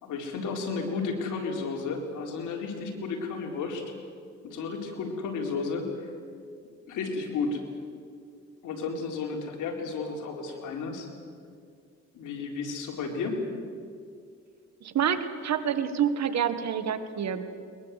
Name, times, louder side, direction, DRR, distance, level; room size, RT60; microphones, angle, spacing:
voice 1, 0.0-3.8 4.4-6.1 6.9-7.6 8.6-11.1 12.1-13.5, left 4 dB, 85° left, 1 dB, 4.1 m, -32 dB
voice 2, 14.8-17.5, right 8 dB, 60° right, 10 dB, 1.8 m, -28 dB
22.0 x 21.0 x 8.3 m, 2.2 s
cardioid pair, 90°, 30 cm